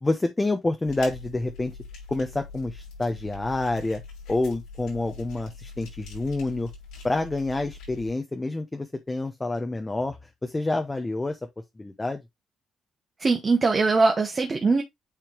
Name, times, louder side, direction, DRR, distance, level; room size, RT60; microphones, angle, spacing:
voice 1, 0.0-1.8 2.1-4.0 4.3-6.7 7.0-11.4 11.8-12.2, left 2 dB, 20° left, 0.9 m, -28 dB
sound 1, 0.9-8.1, left 4 dB, 90° left, 5.1 m, -43 dB
voice 2, 13.2-14.8, right 3 dB, 30° right, 1.1 m, -21 dB
9.1 x 3.4 x 3.1 m
cardioid pair, 90°, 0 cm